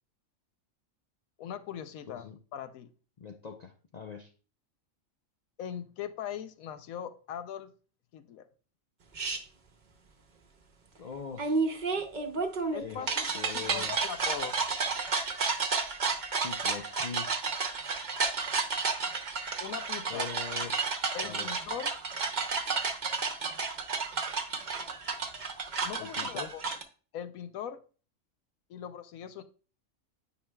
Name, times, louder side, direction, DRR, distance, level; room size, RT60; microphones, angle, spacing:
voice 1, 1.4-2.9 5.6-7.7 8.1-8.5 12.7-13.3 13.5-14.6 19.6-20.3 21.1-21.9 25.8-26.6 27.1-27.8 28.7-29.4, left 9 dB, 90° left, 11 dB, 1.1 m, -40 dB
voice 2, 2.1-2.4 3.2-4.3 11.0-11.6 12.8-14.0 16.4-17.3 20.1-20.8 21.2-21.5 26.0-26.5, left 6 dB, 75° left, 4 dB, 0.3 m, -42 dB
sound 1, 9.1-9.4 11.4-26.8, right 4 dB, 40° right, 0.8 m, -31 dB
9.6 x 5.0 x 2.2 m, 0.38 s
omnidirectional pair, 1.4 m